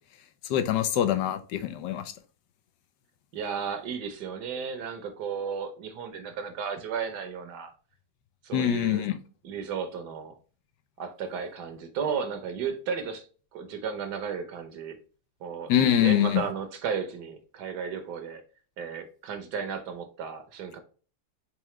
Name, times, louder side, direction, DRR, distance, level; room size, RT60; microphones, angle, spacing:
voice 1, 0.5-2.0 8.5-9.2 15.7-16.4, left 10 dB, 85° left, 1.3 m, -24 dB
voice 2, 3.3-7.7 8.4-9.0 9.4-10.3 11.0-13.2 13.5-15.0 15.4-15.7 16.0-18.4 18.8-20.8, right 6 dB, 75° right, 1.4 m, -34 dB
4.8 x 3.7 x 3.1 m
omnidirectional pair, 1.8 m